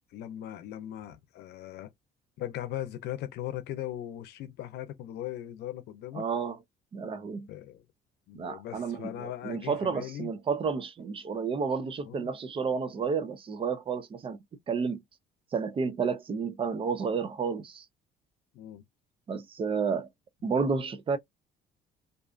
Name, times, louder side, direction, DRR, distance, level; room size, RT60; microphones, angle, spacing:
voice 1, 0.0-1.9 2.4-6.2 7.5-7.8 8.3-10.3 12.0-12.3 18.5-18.8, left 12 dB, 75° left, 0.6 m, -39 dB
voice 2, 6.1-6.6 6.9-7.5 8.3-14.4 14.7-15.0 15.5-17.8 19.3-20.1 20.4-21.2, right 5 dB, 30° right, 0.5 m, -31 dB
2.5 x 2.4 x 2.4 m
cardioid pair, 110°, 17 cm